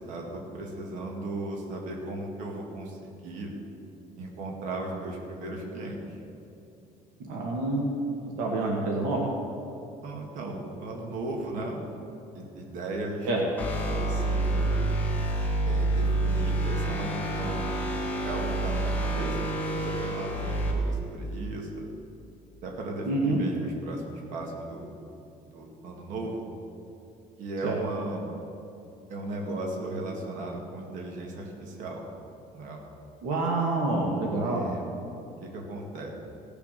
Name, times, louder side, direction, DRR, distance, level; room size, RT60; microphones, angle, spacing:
voice 1, 0.0-3.5 4.2-6.2 10.0-11.8 12.3-13.3 14.0-14.8 15.6-17.9 18.2-21.9 22.6-25.0 25.5-26.4 27.4-28.3 29.1-32.0 32.5-32.8 34.4-34.8 35.4-36.1, right 2 dB, 55° right, 0 dB, 2.0 m, -36 dB
voice 2, 7.2-8.0 8.4-9.3 13.3-13.4 23.1-23.4 27.6-27.8 33.2-34.6, right 2 dB, 70° right, -1 dB, 1.7 m, -27 dB
sound 1, 13.6-20.7, right 2 dB, 10° left, 1.6 m, -28 dB
16.0 x 7.0 x 6.6 m, 2.8 s
cardioid pair, 180°, 16 cm